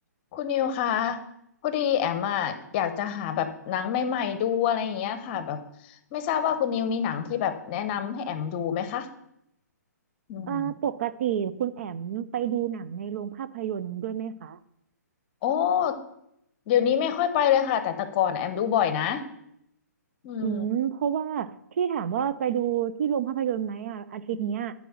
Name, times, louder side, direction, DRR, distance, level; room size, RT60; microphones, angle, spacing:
voice 1, 0.3-1.2 1.6-5.6 6.1-9.1 10.3-10.7 15.4-15.9 16.7-19.2 20.2-20.7, left 9 dB, 35° left, 11 dB, 0.9 m, -26 dB
voice 2, 10.5-14.6 20.4-24.7, right 9 dB, 50° right, 13 dB, 0.5 m, -29 dB
9.1 x 4.8 x 7.1 m, 0.79 s
hypercardioid pair, 135°, 10 cm